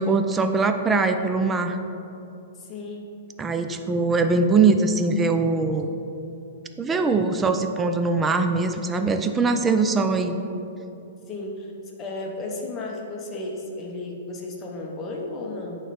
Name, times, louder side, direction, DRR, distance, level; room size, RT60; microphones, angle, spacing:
voice 1, 0.0-1.8 3.4-5.9 6.8-10.3, right 4 dB, 15° right, 7 dB, 0.4 m, -22 dB
voice 2, 2.6-3.1 11.3-15.8, left 2 dB, 25° left, 0 dB, 0.9 m, -34 dB
8.9 x 3.2 x 4.1 m, 2.8 s
hypercardioid pair, 140°, 0 cm